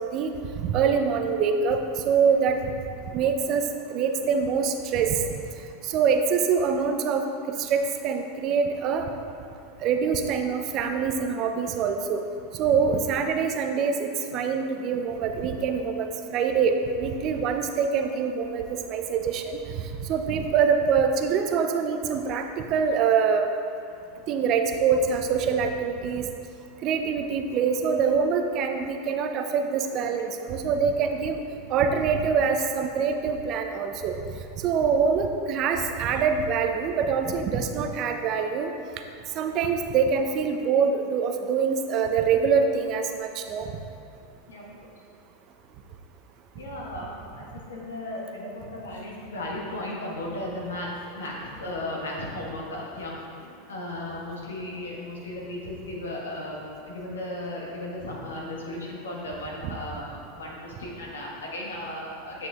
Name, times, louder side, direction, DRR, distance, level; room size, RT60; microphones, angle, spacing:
voice 1, 0.0-2.7 3.1-5.2 5.8-9.1 9.8-12.2 12.5-19.6 20.0-23.5 24.3-26.3 26.8-31.4 31.7-34.2 34.6-38.7 39.3-43.7 59.6-59.8, right 6 dB, 45° right, 6 dB, 0.5 m, -25 dB
voice 2, 44.5-44.9 46.6-62.5, left 1 dB, 90° left, -3 dB, 1.3 m, -36 dB
9.0 x 6.1 x 2.4 m, 2.5 s
hypercardioid pair, 100°, 0 cm